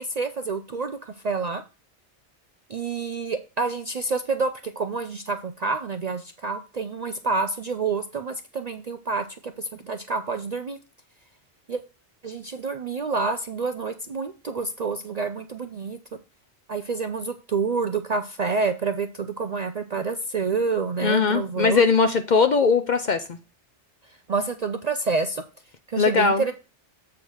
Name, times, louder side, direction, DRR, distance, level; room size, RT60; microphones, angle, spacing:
voice 1, 0.0-1.6 2.7-10.8 11.7-11.8 12.2-16.0 16.7-21.8 24.0-25.4 25.9-26.5, right 4 dB, 55° right, 8 dB, 0.5 m, -28 dB
voice 2, 21.0-23.4 26.0-26.4, left 4 dB, 55° left, 8 dB, 0.5 m, -20 dB
7.7 x 3.6 x 6.2 m, 0.32 s
omnidirectional pair, 1.2 m